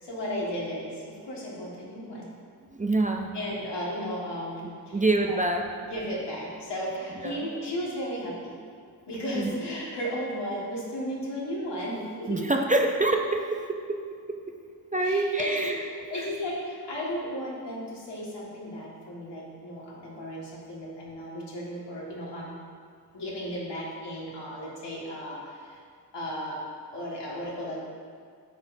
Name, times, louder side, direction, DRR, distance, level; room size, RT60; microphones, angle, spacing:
voice 1, 0.0-2.3 3.3-5.0 5.3-5.4 5.8-8.5 9.1-12.5 15.0-22.6 23.1-25.8 26.1-26.6 26.9-27.9, equal, 80° left, -5 dB, 1.8 m, -34 dB
voice 2, 2.7-3.4 4.9-5.7 7.2-7.5 9.3-9.5 12.3-14.6 14.9-15.8 16.2-16.3, right 2 dB, 20° right, 3 dB, 0.4 m, -26 dB
9.4 x 6.1 x 2.7 m, 2.1 s
wide cardioid pair, 85°, 41 cm